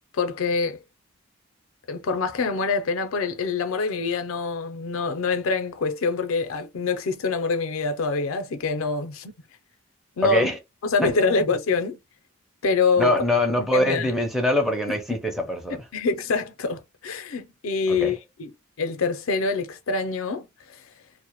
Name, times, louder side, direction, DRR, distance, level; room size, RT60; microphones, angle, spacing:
voice 1, 0.1-0.8 1.9-9.3 10.2-10.5 10.8-12.0 12.6-13.2 13.7-14.1 15.9-18.5 18.8-20.5, left 4 dB, 80° left, 0.5 m, -25 dB
voice 2, 10.2-10.6 11.0-11.5 13.0-15.8 17.9-18.2, left 1 dB, ahead, 0.4 m, -24 dB
2.1 x 2.0 x 2.9 m
head